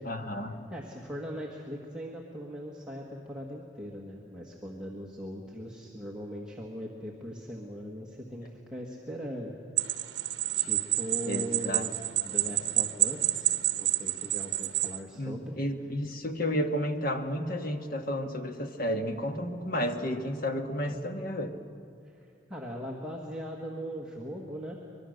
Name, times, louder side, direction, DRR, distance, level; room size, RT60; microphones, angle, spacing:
voice 1, 0.0-0.5 11.2-11.9 15.1-21.5, equal, 50° left, 6 dB, 1.4 m, -32 dB
voice 2, 0.7-9.5 10.5-13.5 13.8-15.6 20.9-21.0 22.0-24.8, equal, 5° right, -3 dB, 1.6 m, -40 dB
sound 1, 9.8-15.0, right 14 dB, 65° right, 1.0 m, -29 dB
24.0 x 22.0 x 6.6 m, 2.5 s
head